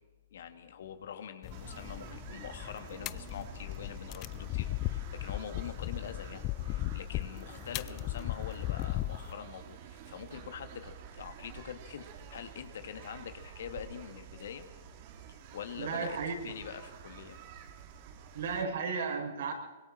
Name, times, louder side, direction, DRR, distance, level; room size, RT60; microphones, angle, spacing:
voice 1, 0.3-14.6 15.3-16.2 16.4-17.4, left 8 dB, 65° left, 8 dB, 2.2 m, -44 dB
sound 1, 1.4-9.3, left 17 dB, 35° left, 0.5 m, -37 dB
sound 2, 1.5-18.6, right 8 dB, 45° right, 2.3 m, -50 dB
voice 2, 15.8-16.3 18.3-19.5, right 5 dB, 65° right, 1 dB, 6.6 m, -34 dB
25.5 x 23.0 x 4.6 m, 1.2 s
hypercardioid pair, 135°, 0 cm